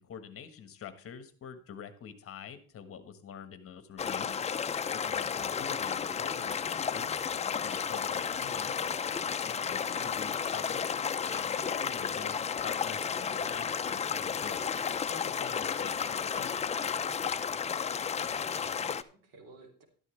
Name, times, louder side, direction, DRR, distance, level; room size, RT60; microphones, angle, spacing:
voice 1, 0.0-4.5 4.9-8.7 9.4-16.6, left 7 dB, 40° left, 10 dB, 1.4 m, -46 dB
sound 1, 4.0-19.0, left 7 dB, 20° left, 0.5 m, -32 dB
voice 2, 9.6-10.0 18.3-19.8, right 3 dB, 70° right, 2 dB, 3.0 m, -55 dB
12.5 x 11.0 x 3.3 m, 0.44 s
cardioid pair, 140°, 34 cm